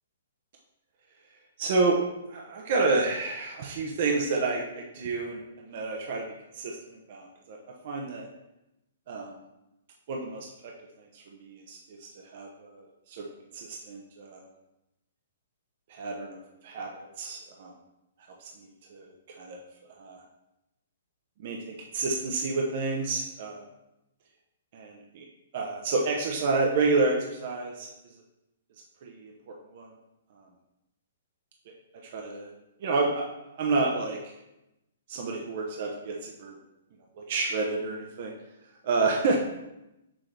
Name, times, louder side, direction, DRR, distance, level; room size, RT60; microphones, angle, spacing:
voice 1, 1.6-2.0 2.3-6.3 6.5-7.6 7.8-8.3 9.1-9.4 10.1-10.7 11.0-13.3 13.5-14.5 15.9-17.7 18.4-19.6 20.0-20.2 21.4-23.6 24.7-25.3 25.5-27.9 29.0-29.9 30.4-30.5 31.7-31.8 32.0-32.5 32.8-33.3 33.5-34.3 35.1-36.6 37.2-38.3 38.8-39.4, right 3 dB, 40° right, -1 dB, 0.9 m, -30 dB
6.2 x 5.8 x 3.3 m, 0.91 s
hypercardioid pair, 165°, 0 cm